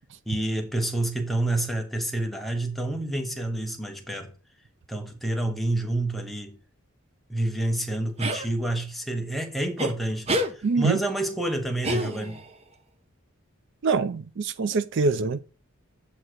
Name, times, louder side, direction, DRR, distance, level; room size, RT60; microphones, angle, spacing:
voice 1, 0.3-4.3 4.9-6.6 7.3-12.4, right 1 dB, ahead, 0.9 m, -28 dB
sound 1, 8.2-8.5 9.8-9.9 10.3-10.5 11.8-12.5, equal, 30° right, 0.7 m, -27 dB
voice 2, 10.6-11.0 13.8-15.4, right 4 dB, 55° right, 0.4 m, -24 dB
7.8 x 2.9 x 6.1 m
head